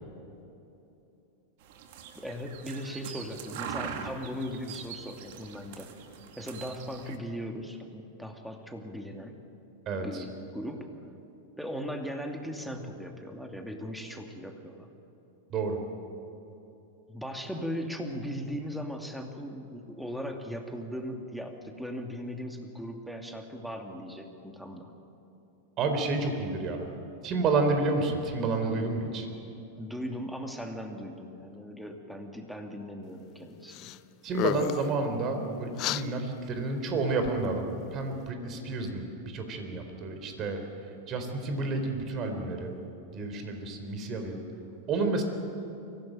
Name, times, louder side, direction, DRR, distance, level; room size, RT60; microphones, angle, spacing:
sound 1, 1.6-7.2, right 7 dB, 60° right, 2.3 m, -42 dB
voice 1, 2.1-5.9 6.4-9.4 9.9-10.9 11.6-14.9 17.1-24.9 29.8-33.9, equal, ahead, 3 dB, 2.6 m, -38 dB
voice 2, 9.9-10.2 15.5-15.8 25.8-26.9 27.2-29.3 34.2-40.6 41.1-42.7 43.1-44.4 44.9-45.2, right 3 dB, 40° right, 5 dB, 4.1 m, -30 dB
sound 2, 33.7-34.0 34.3-34.9 35.8-36.0, left 15 dB, 45° left, 0.6 m, -31 dB
24.0 x 17.0 x 9.1 m, 2.9 s
hypercardioid pair, 95°, 0 cm